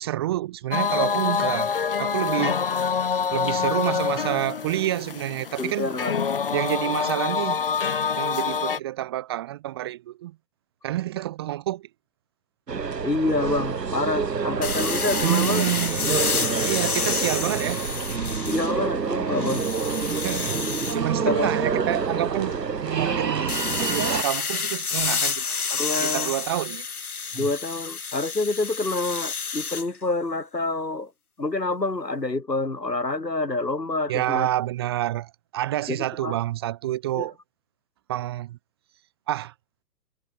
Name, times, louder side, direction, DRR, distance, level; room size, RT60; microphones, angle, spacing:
voice 1, 0.0-1.7 2.0-2.6 3.3-5.9 6.5-7.6 8.1-10.3 10.8-11.9 15.2-17.8 20.2-20.6 20.9-25.6 26.0-26.8 27.3-27.5 34.1-37.3 38.1-38.6 39.3-39.5, right 14 dB, 15° right, 0.8 m, -28 dB
sound 1, 0.7-8.8, left 6 dB, 35° left, 0.5 m, -26 dB
voice 2, 5.6-6.1 13.0-15.6 18.4-19.7 21.3-21.5 25.7-26.3 27.3-31.1 31.4-34.5 35.9-36.4 37.2-37.3, left 2 dB, 80° left, 4.6 m, -27 dB
sound 2, 12.7-24.2, right 5 dB, 80° right, 1.1 m, -27 dB
sound 3, 14.6-18.9 19.3-21.0 23.5-29.9, left 5 dB, 60° left, 6.8 m, -29 dB
figure-of-eight pair, 125°, 49 cm